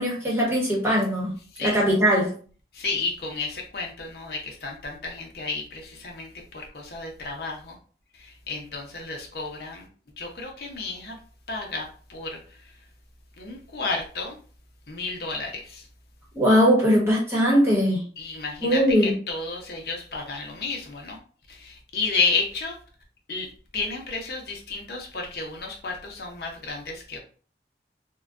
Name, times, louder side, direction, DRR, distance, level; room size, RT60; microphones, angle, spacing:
voice 1, 0.0-1.3 1.6-2.3 16.3-18.0 18.6-19.1, equal, 15° right, -4 dB, 1.0 m, -20 dB
voice 2, 2.7-7.8 8.2-9.9 10.2-11.2 11.5-12.4 13.4-14.4 14.9-15.8 18.2-21.2 21.5-22.7 23.3-23.5 23.7-27.2, left 4 dB, 65° left, 1 dB, 0.7 m, -31 dB
3.7 x 2.1 x 2.4 m, 0.41 s
head